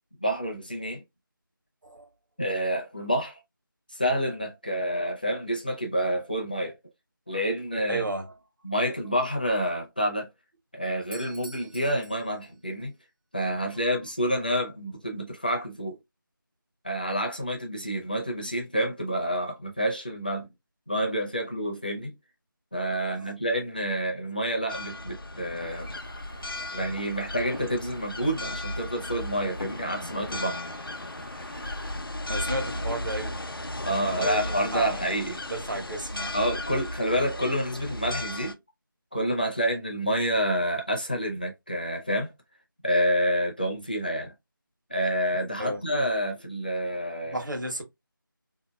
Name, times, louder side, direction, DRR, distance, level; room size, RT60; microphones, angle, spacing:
voice 1, 0.2-1.0 2.4-3.4 3.9-6.7 7.3-8.0 8.6-10.3 10.7-12.9 13.3-16.0 16.8-20.5 20.9-22.1 22.7-25.9 26.7-30.6 33.8-35.4 36.3-38.6 39.1-42.3 42.8-44.3 44.9-47.4, equal, 25° left, 0.5 m, -28 dB
voice 2, 7.9-8.3 23.0-23.3 26.7-26.8 31.5-31.8 32.3-35.0 35.5-36.4 45.6-45.8 47.2-47.8, right 2 dB, 60° right, 1.1 m, -34 dB
Doorbell, 11.0-12.9, right 1 dB, 85° right, 0.8 m, -49 dB
sound 1, 24.7-38.5, left 1 dB, 85° left, 0.6 m, -35 dB
Train, 25.6-32.0, equal, 30° right, 0.6 m, -52 dB
3.6 x 2.7 x 2.2 m
figure-of-eight pair, 170°, 12 cm